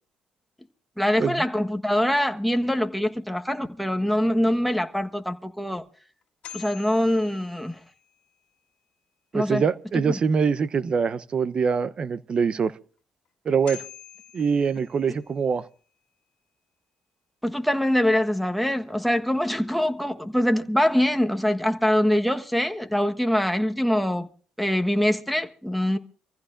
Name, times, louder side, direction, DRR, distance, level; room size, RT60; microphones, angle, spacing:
voice 1, 1.0-5.8 6.5-7.8 9.3-9.6 10.0-10.2 17.4-24.3 24.6-26.0, left 1 dB, ahead, 1.3 m, -24 dB
sound 1, 6.2-8.3 13.3-13.4 13.7-15.6, left 10 dB, 65° left, 1.8 m, -45 dB
voice 2, 9.3-12.7 13.4-13.8 14.3-15.7, right 6 dB, 45° right, 0.8 m, -24 dB
25.5 x 15.0 x 2.6 m
supercardioid pair, 75°, 2 cm